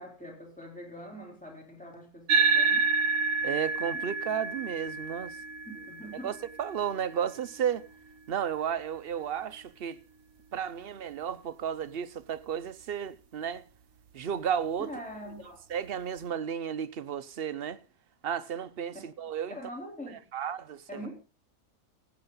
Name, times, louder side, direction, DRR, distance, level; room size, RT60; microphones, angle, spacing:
voice 1, 0.0-2.9 5.6-6.3 14.8-15.6 19.5-20.2 20.9-21.1, equal, 5° left, 3.5 m, -43 dB
sound 1, 2.3-11.0, right 4 dB, 75° right, 1.3 m, -31 dB
voice 2, 3.4-5.4 6.2-7.8 8.3-10.0 10.5-13.6 14.1-14.9 15.7-17.8 18.2-19.6 20.3-21.0, right 8 dB, 55° right, 0.7 m, -33 dB
15.5 x 8.7 x 3.8 m
omnidirectional pair, 1.5 m